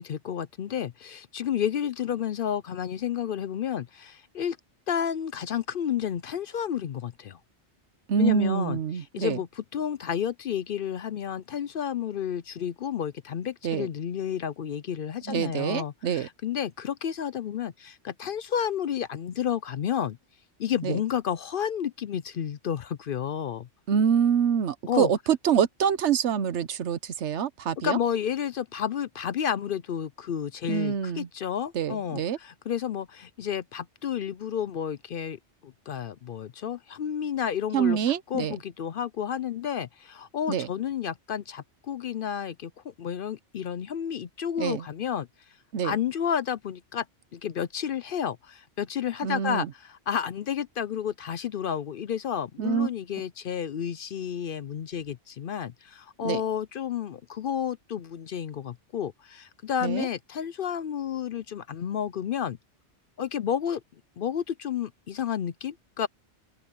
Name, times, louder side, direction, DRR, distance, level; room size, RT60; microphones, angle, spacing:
voice 1, 0.0-4.6 4.9-7.4 8.2-20.2 20.6-23.7 24.9-25.1 27.8-38.0 38.3-45.3 45.8-47.1 47.3-62.6 63.2-63.8 64.2-66.1, left 9 dB, 60° left, 0.7 m, -31 dB
voice 2, 8.1-9.4 13.6-13.9 15.3-16.3 20.8-21.0 23.9-28.0 30.7-31.3 31.7-32.4 37.7-38.6 40.5-40.7 44.6-44.8 45.7-46.0 49.2-49.7 52.6-52.9 56.2-56.4 59.8-60.1, right 7 dB, 75° right, 1.1 m, -26 dB
open air
omnidirectional pair, 1.2 m